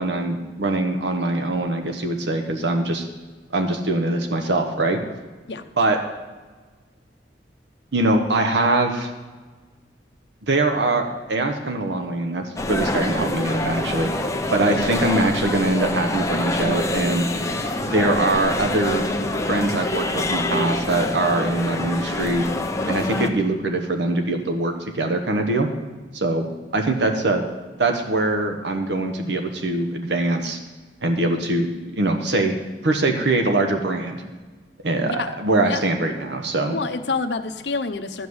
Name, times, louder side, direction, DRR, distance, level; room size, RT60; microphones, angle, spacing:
voice 1, 0.0-3.0 3.5-5.0 5.8-6.0 7.9-9.1 10.5-14.2 14.5-17.3 17.8-19.1 19.5-22.5 22.9-25.7 26.1-26.5 26.7-27.4 27.8-30.6 31.0-32.5 32.8-34.2 34.8-36.8, right 2 dB, 70° right, 4 dB, 1.0 m, -22 dB
sound 1, 12.6-23.3, left 1 dB, 20° left, 0.7 m, -26 dB
voice 2, 36.7-38.3, left 4 dB, 70° left, 9 dB, 0.8 m, -27 dB
13.0 x 5.4 x 7.9 m, 1.3 s
head